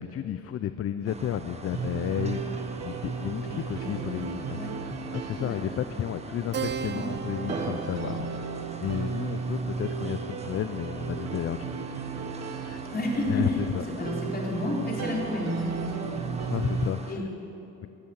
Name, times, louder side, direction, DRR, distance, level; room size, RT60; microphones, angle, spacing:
voice 1, 0.0-4.6 5.1-8.4 8.8-11.8 12.6-12.8 13.3-14.1 16.5-17.2 17.8-17.9, left 10 dB, 50° left, 11 dB, 0.5 m, -32 dB
sound 1, 1.1-17.1, right 3 dB, 20° right, 1.0 m, -41 dB
sound 2, 1.7-16.9, right 5 dB, 55° right, 1.1 m, -35 dB
voice 2, 3.4-4.2 4.5-4.7 5.3-5.6 6.8-7.1 12.9-13.6 14.0-16.2 17.1-17.2, left 1 dB, 30° left, -2 dB, 3.7 m, -31 dB
Keyboard (musical), 6.5-11.5, right 6 dB, 35° right, 0.5 m, -40 dB
14.5 x 8.3 x 8.9 m, 2.9 s
cardioid pair, 90°, 30 cm